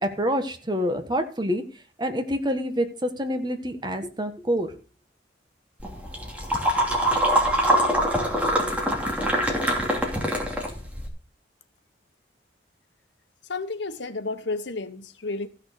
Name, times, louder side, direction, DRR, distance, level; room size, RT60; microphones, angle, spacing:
voice 1, 0.0-1.6 2.0-4.7, equal, 25° right, 1.4 m, -27 dB
sound 1, 5.8-11.1, equal, 10° right, 2.7 m, -24 dB
voice 2, 13.5-15.5, left 3 dB, 80° left, 1.2 m, -31 dB
14.5 x 6.5 x 6.7 m
head